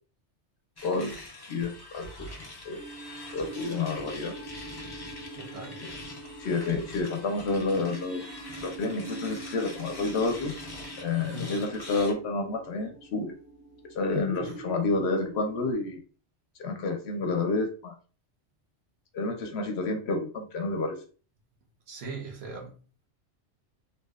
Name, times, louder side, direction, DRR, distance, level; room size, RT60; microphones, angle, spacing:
voice 1, 0.8-1.2 1.5-2.3 2.6-2.8 3.3-4.3 5.8-5.9 6.4-8.2 8.6-10.5 11.0-13.3 13.9-16.0 16.6-17.9 19.1-21.0, left 3 dB, 70° left, 0.8 m, -29 dB
sound 1, 0.8-12.1, left 2 dB, 35° left, 0.4 m, -44 dB
sound 2, 2.8-15.7, right 3 dB, 90° right, 1.1 m, -44 dB
voice 2, 5.3-5.9 11.2-11.6 14.4-14.5 21.9-22.8, right 3 dB, 65° right, 0.9 m, -40 dB
2.8 x 2.0 x 2.3 m
omnidirectional pair, 1.2 m